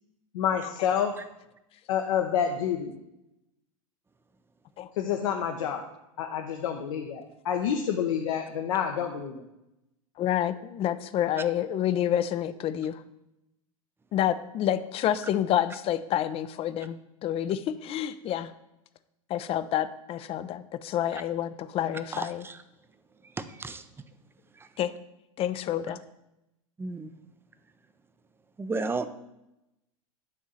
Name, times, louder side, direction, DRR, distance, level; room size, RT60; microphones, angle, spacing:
voice 1, 0.3-1.2 1.9-3.0 4.9-5.9 6.2-9.5, left 8 dB, 65° left, 3 dB, 0.9 m, -28 dB
voice 2, 10.2-13.0 14.1-18.5 19.3-22.4 24.8-24.9 25.4-26.0, left 11 dB, 30° left, 13 dB, 0.5 m, -28 dB
voice 3, 22.1-22.6 23.2-23.9 24.5-24.7 25.9-26.0 26.8-27.2 28.6-29.1, right 3 dB, 10° right, 11 dB, 0.6 m, -34 dB
9.2 x 3.6 x 7.0 m, 0.90 s
hypercardioid pair, 90°, 18 cm